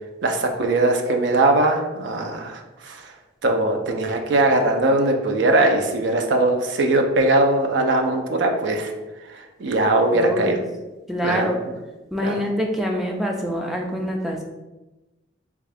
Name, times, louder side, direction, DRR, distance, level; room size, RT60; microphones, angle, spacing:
voice 1, 0.2-3.0 3.4-8.9 9.3-10.6 11.2-11.5 12.2-12.3, right 2 dB, 70° right, 3 dB, 0.5 m, -20 dB
voice 2, 10.1-10.6 11.1-11.6 12.1-14.4, equal, ahead, 0 dB, 0.3 m, -25 dB
3.5 x 2.4 x 3.3 m, 1.1 s
head